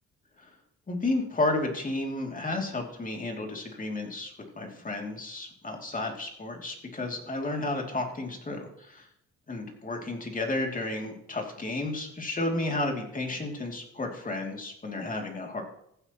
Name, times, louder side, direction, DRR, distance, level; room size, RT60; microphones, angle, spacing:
voice 1, 0.9-9.1 9.5-15.6, left 2 dB, 25° left, 2 dB, 2.7 m, -32 dB
15.0 x 8.5 x 3.0 m, 0.73 s
cardioid pair, 90°, 30 cm